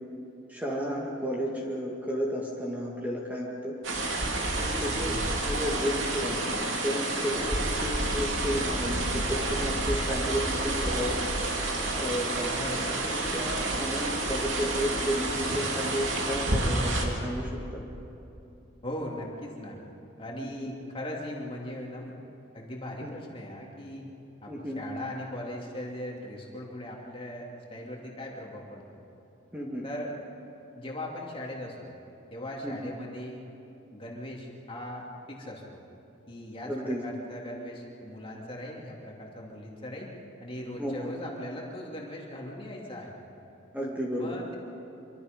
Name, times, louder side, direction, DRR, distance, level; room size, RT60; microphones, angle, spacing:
voice 1, 0.5-3.7 4.6-6.4 6.8-11.1 12.0-12.5 13.0-17.8 20.4-20.7 23.0-23.1 24.5-24.8 29.5-29.9 32.6-32.8 36.7-37.0 40.8-41.1 43.7-44.3, equal, 10° right, -3 dB, 2.0 m, -32 dB
sound 1, 3.8-17.1, right 2 dB, 65° right, 2.8 m, -29 dB
voice 2, 5.1-5.4 12.5-13.0 18.8-19.8 20.2-22.1 22.5-24.1 24.4-29.0 29.8-30.1 30.7-31.8 32.3-33.4 33.9-35.8 36.3-40.1 40.4-43.1 44.1-44.6, left 1 dB, 25° left, -2 dB, 2.8 m, -39 dB
26.0 x 24.5 x 5.3 m, 2.8 s
head